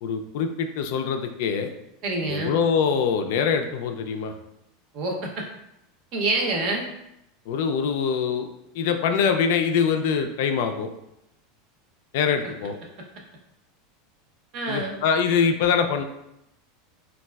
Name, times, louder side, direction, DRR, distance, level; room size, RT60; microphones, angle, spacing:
voice 1, 0.0-1.7 2.3-4.3 7.5-8.5 8.7-10.9 12.1-12.8 14.7-16.0, left 6 dB, 65° left, 6 dB, 0.3 m, -24 dB
voice 2, 2.0-2.6 4.9-5.4 6.1-6.9 14.5-14.9, right 2 dB, 40° right, 0 dB, 0.6 m, -26 dB
4.0 x 2.3 x 2.2 m, 0.83 s
supercardioid pair, 165°, 0 cm